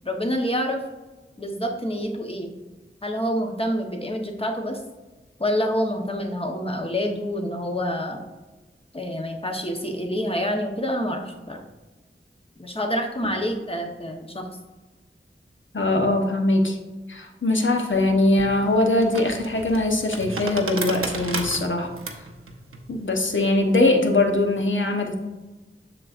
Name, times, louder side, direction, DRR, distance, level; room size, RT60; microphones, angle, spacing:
voice 1, 0.0-0.8 1.4-2.5 3.0-4.8 5.4-8.2 8.9-11.6 12.6-14.4, equal, 25° left, 2 dB, 1.0 m, -27 dB
voice 2, 15.7-16.8 17.1-21.9 22.9-25.2, left 2 dB, 65° left, 3 dB, 1.0 m, -21 dB
sound 1, 17.9-24.6, right 3 dB, 90° right, 0.7 m, -35 dB
7.5 x 6.0 x 2.5 m, 1.2 s
wide cardioid pair, 45°, 21 cm